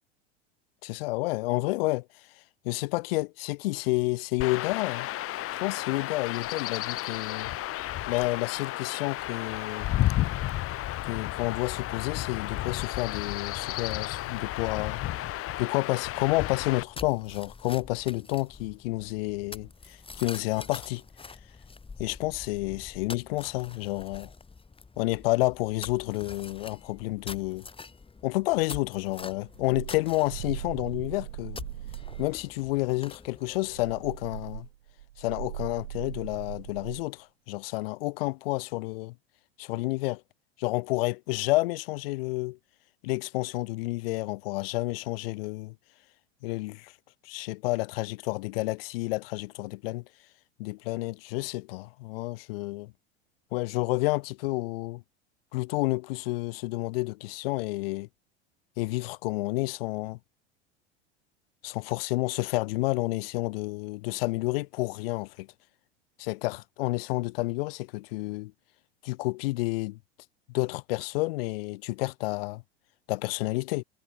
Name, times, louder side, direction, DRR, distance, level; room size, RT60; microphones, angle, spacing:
voice 1, 0.8-2.3 2.6-5.1 5.6-7.5 8.0-9.9 11.0-15.0 15.6-21.0 22.0-24.3 25.0-27.7 28.2-31.6 32.2-34.7 35.2-39.1 39.6-40.2 40.6-42.6 43.0-45.7 46.4-46.9 47.2-50.0 50.6-52.9 53.5-55.0 55.5-58.1 58.8-60.2 61.6-65.5 66.2-68.5 69.0-70.0 70.5-72.6 73.1-73.8, left 22 dB, 60° left, 3.1 m, -30 dB
Chirp tweet / Wind / Stream, 4.4-16.8, left 15 dB, 45° left, 5.9 m, -32 dB
sound 1, 16.7-34.5, left 4 dB, 15° left, 7.7 m, -46 dB
sound 2, 29.2-32.4 33.6-37.1, right 14 dB, 70° right, 5.3 m, -40 dB
figure-of-eight pair, 80°, 32 cm